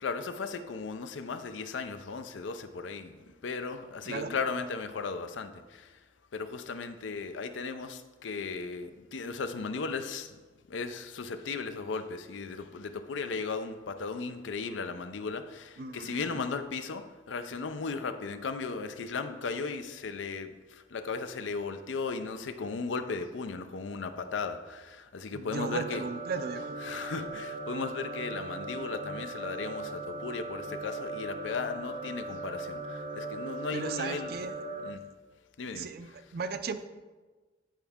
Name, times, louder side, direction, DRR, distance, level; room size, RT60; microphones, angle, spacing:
voice 1, 0.0-5.9 6.3-10.4 10.7-20.5 20.9-26.0 26.8-34.3 34.8-35.0 35.6-35.9, left 4 dB, 80° left, 9 dB, 0.5 m, -36 dB
voice 2, 15.8-16.4 25.3-26.8 33.7-34.6 35.7-36.8, right 5 dB, 55° right, 11 dB, 0.4 m, -36 dB
sound 1, 25.5-34.9, right 2 dB, 90° right, 0.8 m, -39 dB
9.0 x 4.5 x 3.5 m, 1.3 s
head